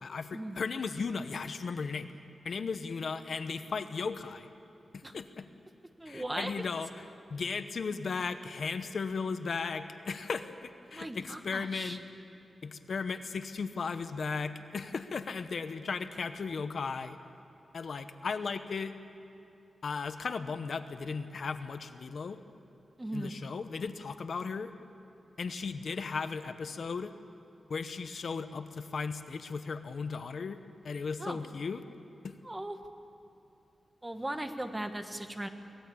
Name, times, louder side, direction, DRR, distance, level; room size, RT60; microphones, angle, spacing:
voice 1, 0.0-2.1 2.4-4.5 4.9-5.5 6.1-7.0 7.3-12.0 12.6-17.2 17.7-18.9 19.8-22.4 23.1-24.7 25.4-27.1 27.7-30.6 30.8-31.8 32.2-32.3, left 5 dB, 60° left, 10 dB, 0.9 m, -36 dB
voice 2, 6.0-6.5 10.9-12.0 23.0-23.3 31.2-31.4 32.4-32.8 34.0-35.5, right 1 dB, 15° right, 7 dB, 1.3 m, -38 dB
23.5 x 18.5 x 8.6 m, 2.8 s
wide cardioid pair, 140°, 0 cm